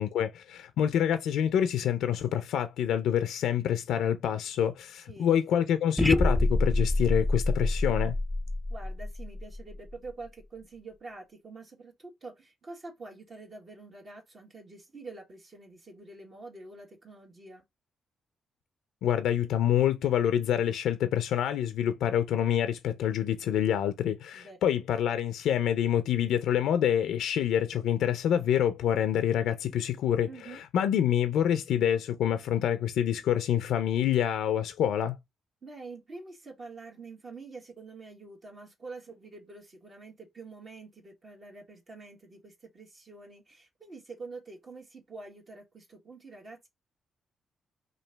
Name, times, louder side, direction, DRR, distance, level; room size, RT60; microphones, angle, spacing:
voice 1, 0.0-8.2 19.0-35.2, left 10 dB, 80° left, 0.4 m, -27 dB
voice 2, 5.1-5.4 8.7-17.6 24.3-24.6 30.2-30.6 35.6-46.7, right 3 dB, 50° right, 1.4 m, -46 dB
sound 1, 6.0-10.1, left 1 dB, 5° left, 0.3 m, -27 dB
2.9 x 2.6 x 4.4 m
supercardioid pair, 60°, 0 cm